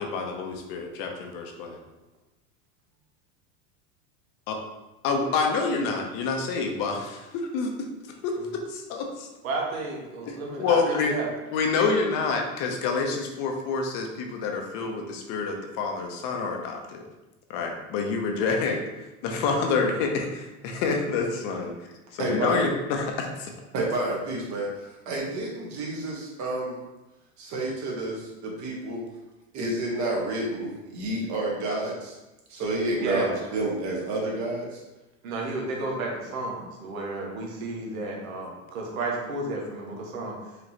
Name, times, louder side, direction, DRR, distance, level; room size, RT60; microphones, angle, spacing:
voice 1, 0.0-1.8 4.5-4.6 5.0-7.7 8.2-9.3 10.3-11.1 11.5-17.0 17.5-18.8 19.2-21.7 22.1-23.5, left 4 dB, 55° left, 2 dB, 0.8 m, -27 dB
voice 2, 9.4-11.3 33.0-33.4 35.2-40.3, right 2 dB, 85° right, -1 dB, 1.3 m, -32 dB
voice 3, 22.2-22.7 23.7-26.8 27.4-29.0 29.5-32.2 32.5-34.8, right 1 dB, 45° right, -2 dB, 1.4 m, -29 dB
5.0 x 3.0 x 2.9 m, 1.0 s
supercardioid pair, 120°, 41 cm